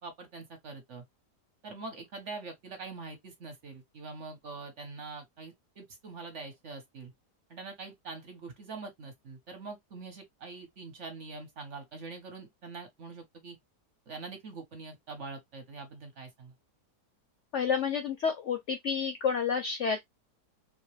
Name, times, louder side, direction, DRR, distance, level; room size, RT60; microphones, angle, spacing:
voice 1, 0.0-1.0 1.6-7.1 7.5-13.6 14.1-16.5, right 4 dB, 50° right, 1.1 m, -44 dB
voice 2, 17.5-20.0, left 6 dB, 65° left, 0.7 m, -29 dB
2.9 x 2.9 x 3.1 m
omnidirectional pair, 1.8 m